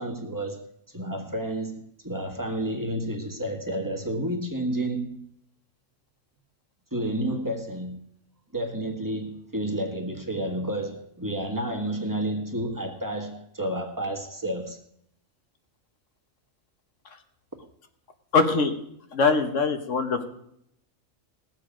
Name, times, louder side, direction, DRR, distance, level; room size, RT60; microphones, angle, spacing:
voice 1, 0.0-5.2 6.9-8.0 8.5-14.8, right 1 dB, 15° right, 1.6 m, -30 dB
voice 2, 18.3-18.7 19.1-20.2, left 4 dB, 65° left, 1.6 m, -22 dB
19.0 x 7.7 x 5.1 m
omnidirectional pair, 1.4 m